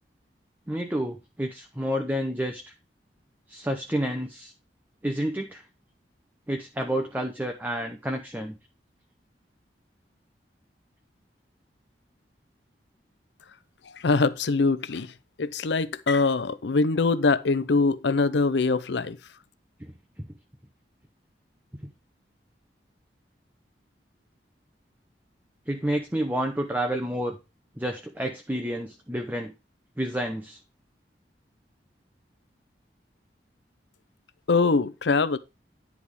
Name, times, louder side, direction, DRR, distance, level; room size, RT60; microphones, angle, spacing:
voice 1, 0.7-2.6 3.5-4.5 5.0-5.6 6.5-8.6 19.8-19.9 25.7-27.4 27.8-29.5 30.0-30.6, right 1 dB, 10° right, 0.7 m, -29 dB
voice 2, 13.9-15.1 15.4-19.2 34.5-35.4, left 3 dB, 80° left, 0.6 m, -23 dB
10.5 x 3.6 x 4.7 m
head